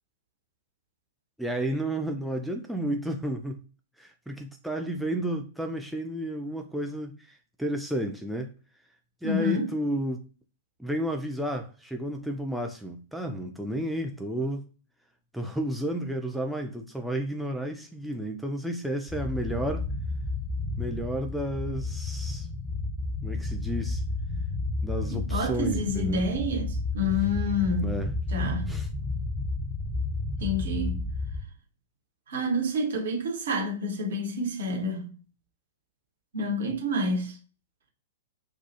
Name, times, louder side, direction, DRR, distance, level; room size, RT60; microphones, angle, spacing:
voice 1, 1.4-3.6 4.0-8.5 9.2-10.3 10.8-14.7 15.3-19.9 20.8-22.5 23.2-24.0 24.8-26.2 27.8-28.1 28.7-28.9, right 1 dB, ahead, 0.3 m, -32 dB
voice 2, 9.2-9.7 25.1-28.8 30.4-31.1 32.3-35.1 36.3-37.4, left 1 dB, 60° right, 1.0 m, -29 dB
sound 1, 19.1-31.4, left 3 dB, 20° right, 0.8 m, -31 dB
2.3 x 2.2 x 2.7 m
figure-of-eight pair, 105°, 0 cm